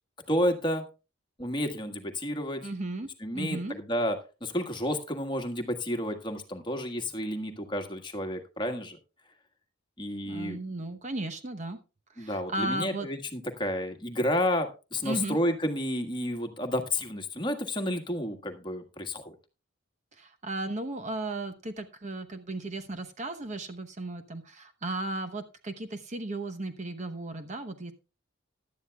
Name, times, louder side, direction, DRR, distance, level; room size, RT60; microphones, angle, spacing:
voice 1, 0.3-0.8 1.4-2.7 3.2-9.0 10.0-10.6 12.2-19.3, left 1 dB, 20° left, 5 dB, 1.5 m, -31 dB
voice 2, 2.6-3.1 3.3-3.7 10.2-11.8 12.1-13.1 15.0-15.4 20.1-27.9, right 2 dB, 35° right, 7 dB, 0.9 m, -35 dB
16.0 x 11.5 x 2.3 m, 0.31 s
head